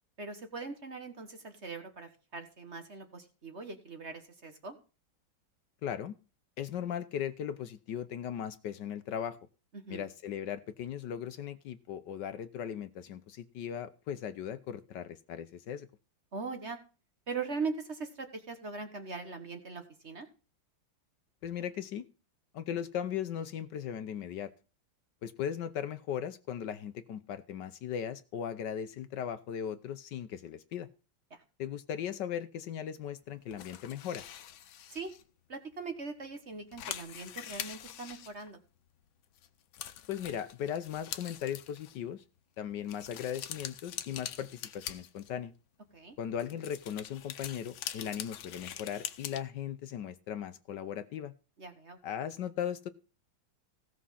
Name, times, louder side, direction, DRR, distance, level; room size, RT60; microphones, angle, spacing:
voice 1, 0.2-4.8 9.7-10.1 16.3-16.8 17.3-20.3 31.3-31.4 34.9-35.1 35.5-38.6 45.9-46.1 51.6-52.0, right 4 dB, 40° right, 7 dB, 1.5 m, -40 dB
voice 2, 5.8-6.1 6.6-9.4 9.9-15.9 21.4-22.0 22.5-24.5 25.2-30.9 31.6-34.2 40.1-42.2 42.6-45.5 46.2-51.3 52.0-52.9, left 9 dB, 70° left, 12 dB, 1.3 m, -38 dB
sound 1, 33.5-35.2 35.8-35.9 36.2-36.3 36.5-38.9 39.4-39.5 39.7-42.0 42.9-45.5 46.3-49.4, left 11 dB, 90° left, 1.6 m, -44 dB
16.5 x 6.2 x 5.7 m, 0.34 s
omnidirectional pair, 2.1 m